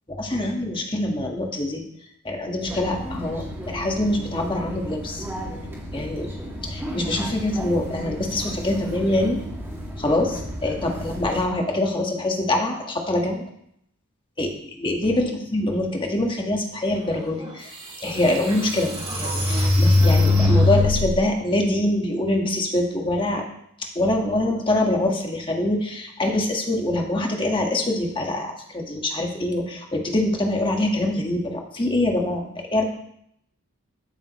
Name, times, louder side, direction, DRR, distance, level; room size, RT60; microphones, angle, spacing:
voice 1, 0.2-1.8 2.2-5.3 5.9-6.3 6.6-9.4 10.0-13.4 14.4-14.5 14.8-17.8 18.0-23.4 23.9-32.8, left 1 dB, 20° left, 1 dB, 1.5 m, -24 dB
sound 1, 2.7-11.4, equal, 10° right, 2.4 m, -34 dB
sound 2, 17.4-17.5 18.0-21.2, left 2 dB, 30° right, 3.5 m, -20 dB
14.5 x 8.9 x 3.1 m, 0.73 s
head